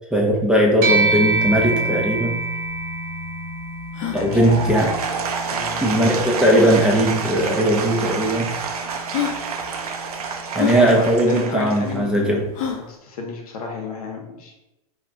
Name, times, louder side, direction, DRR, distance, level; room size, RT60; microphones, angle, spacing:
voice 1, 0.1-2.4 4.1-4.9 5.8-8.5 10.5-12.5, equal, 5° right, -2 dB, 0.4 m, -18 dB
sound 1, 0.8-10.4, right 3 dB, 45° right, 0.7 m, -28 dB
sound 2, 2.4-2.5 2.6-2.7 3.3-3.4 3.9-4.2 5.6-5.7 6.5-6.9 7.8-7.9 8.7-8.8 9.1-9.4 10.5-10.8 12.5-12.9, left 8 dB, 45° left, 0.6 m, -27 dB
voice 2, 4.1-4.6 5.5-6.1 10.6-12.4 12.9-14.5, left 4 dB, 75° left, 1 dB, 0.8 m, -31 dB
Applause / Crowd, 4.1-12.3, right 5 dB, 90° right, 0.4 m, -29 dB
2.3 x 2.1 x 3.7 m, 0.95 s
hypercardioid pair, 110°, 19 cm